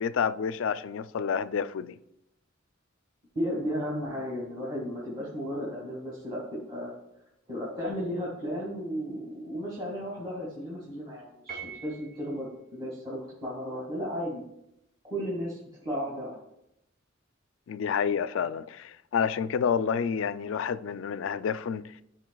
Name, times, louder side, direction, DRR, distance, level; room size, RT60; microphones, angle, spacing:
voice 1, 0.0-2.0 17.7-21.8, left 7 dB, 70° left, 0.3 m, -29 dB
voice 2, 3.3-6.9 7.5-12.5 12.7-14.4 15.0-16.4, equal, 20° right, 1.8 m, -34 dB
Piano, 11.5-12.4, right 6 dB, 50° right, 2.2 m, -42 dB
13.0 x 5.1 x 2.3 m
head